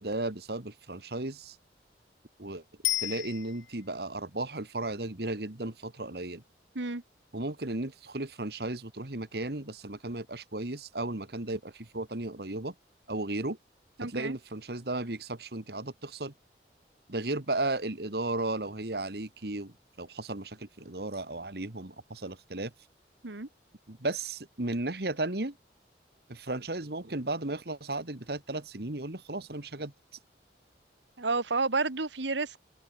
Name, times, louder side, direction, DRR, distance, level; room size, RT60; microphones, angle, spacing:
voice 1, 0.0-1.6 2.4-2.6 3.0-6.4 7.3-12.7 13.1-13.6 14.0-16.3 17.1-22.7 23.9-25.6 26.3-29.9, right 2 dB, 60° right, 1.8 m, -35 dB
Bicycle bell, 2.8-4.0 13.0-13.1, left 16 dB, 90° left, 1.0 m, -32 dB
voice 2, 14.0-14.4 23.2-23.5 31.2-32.6, right 3 dB, 80° right, 1.6 m, -30 dB
open air
head